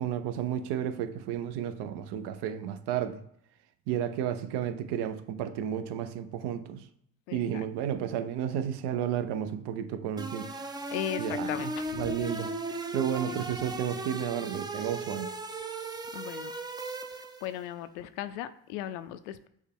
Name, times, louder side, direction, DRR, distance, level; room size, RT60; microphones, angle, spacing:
voice 1, 0.0-3.2 3.9-6.8 7.3-10.5 11.2-15.3, right 9 dB, 60° right, 0.7 m, -32 dB
voice 2, 7.3-7.6 10.9-12.2 13.3-13.4 16.1-16.5 17.4-19.5, left 11 dB, 75° left, 0.5 m, -37 dB
sound 1, 10.2-17.6, right 2 dB, 10° right, 0.4 m, -37 dB
6.3 x 2.3 x 3.5 m
hypercardioid pair, 70°, 46 cm